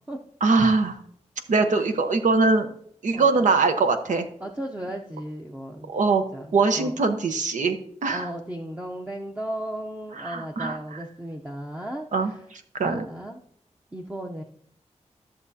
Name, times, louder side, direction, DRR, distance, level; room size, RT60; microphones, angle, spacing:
voice 1, 0.4-1.0 1.5-2.7 3.0-4.3 5.9-8.3 10.2-11.0 12.1-13.0, right 3 dB, 90° right, 7 dB, 0.9 m, -22 dB
voice 2, 3.1-3.5 4.4-5.9 6.3-6.5 6.7-7.0 8.1-12.4 12.8-13.4 13.9-14.4, right 1 dB, 10° right, 1 dB, 0.6 m, -35 dB
13.5 x 7.1 x 2.7 m, 0.63 s
wide cardioid pair, 145°, 12 cm